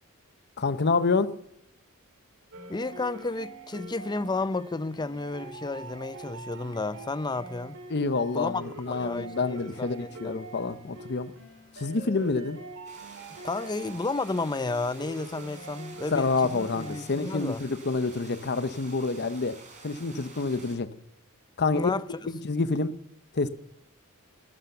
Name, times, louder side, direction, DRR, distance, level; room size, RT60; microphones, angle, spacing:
voice 1, 0.6-1.3 7.9-11.3 11.8-12.6 16.1-19.6 19.8-20.9 21.6-21.9 22.3-23.0 23.3-23.5, left 3 dB, 50° left, 0.8 m, -27 dB
sound 1, 2.5-17.0, right 2 dB, 60° right, 3.1 m, -44 dB
voice 2, 2.7-7.8 8.3-10.4 13.4-17.6 21.7-22.2, left 3 dB, 20° left, 0.5 m, -32 dB
sound 2, 12.8-20.7, right 3 dB, 35° right, 4.7 m, -49 dB
13.5 x 11.5 x 6.8 m
head